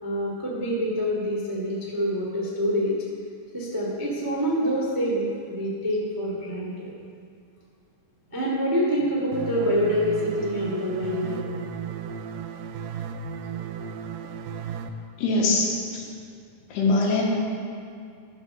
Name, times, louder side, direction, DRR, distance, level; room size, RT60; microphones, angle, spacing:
voice 1, 0.0-3.0 3.5-6.9 8.3-11.4, equal, 25° right, -5 dB, 0.4 m, -26 dB
sound 1, 9.3-14.9, right 7 dB, 80° right, 2.4 m, -35 dB
voice 2, 15.2-16.0 16.7-17.2, left 2 dB, 70° left, -2 dB, 3.5 m, -22 dB
12.5 x 6.2 x 6.7 m, 2.4 s
omnidirectional pair, 5.0 m